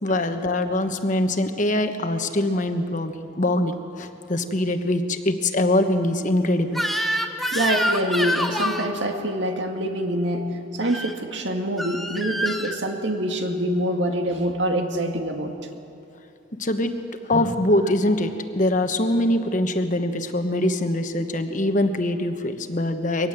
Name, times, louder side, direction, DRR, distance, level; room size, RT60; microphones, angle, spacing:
voice 1, 0.0-6.8 16.6-16.9 17.2-23.3, left 1 dB, 40° left, 7 dB, 1.2 m, -23 dB
Crying sobbing / Screech, 6.7-8.9 10.8-11.1 11.8-12.8, equal, ahead, 1.0 m, -26 dB
voice 2, 7.5-10.5 10.7-15.5, right 1 dB, 65° right, 3 dB, 2.2 m, -25 dB
23.5 x 18.5 x 7.9 m, 2.6 s
head